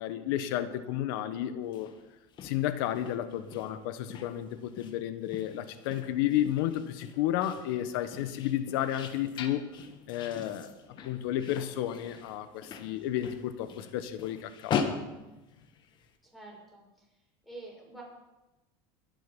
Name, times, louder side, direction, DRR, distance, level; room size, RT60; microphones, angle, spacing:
voice 1, 0.0-1.9 2.4-9.7 10.1-10.7 11.0-14.9, left 12 dB, 75° left, 11 dB, 1.3 m, -32 dB
sound 1, 1.6-16.1, left 6 dB, 40° left, 1.6 m, -41 dB
voice 2, 16.2-17.1 17.4-18.0, right 2 dB, ahead, -4 dB, 5.9 m, -47 dB
22.5 x 7.8 x 5.4 m, 1.0 s
supercardioid pair, 130°, 12 cm